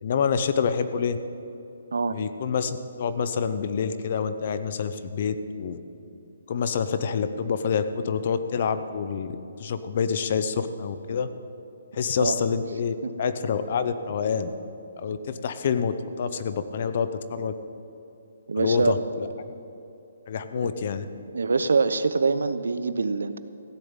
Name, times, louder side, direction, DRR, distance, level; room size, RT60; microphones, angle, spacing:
voice 1, 0.0-1.2 2.1-5.8 6.5-11.3 11.9-14.5 15.0-17.5 18.6-19.3 20.3-21.1, left 6 dB, 30° left, 11 dB, 0.6 m, -27 dB
voice 2, 18.5-18.9 20.6-20.7 21.3-23.4, right 4 dB, 90° right, 12 dB, 0.8 m, -24 dB
15.5 x 6.9 x 8.9 m, 2.7 s
hypercardioid pair, 180°, 0 cm